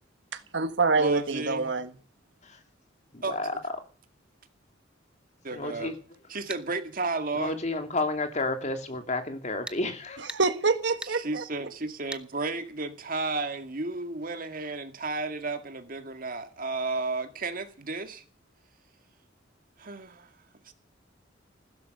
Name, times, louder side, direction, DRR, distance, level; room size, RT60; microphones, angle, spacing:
voice 1, 0.3-1.9 10.3-11.4, right 4 dB, 65° right, 1.6 m, -26 dB
voice 2, 1.0-1.7 3.2-3.6 5.4-5.9 6.3-7.6 11.0-18.2 19.8-20.3 20.6-20.7, right 3 dB, 50° right, 2.1 m, -33 dB
voice 3, 3.1-3.5 5.5-5.9 7.3-10.2, left 2 dB, 40° left, 2.7 m, -31 dB
sound 1, 6.5-6.7 9.7-9.8 10.3-10.4 11.0-11.2 12.1-12.3, right 1 dB, 5° right, 0.9 m, -38 dB
16.0 x 13.0 x 6.7 m
head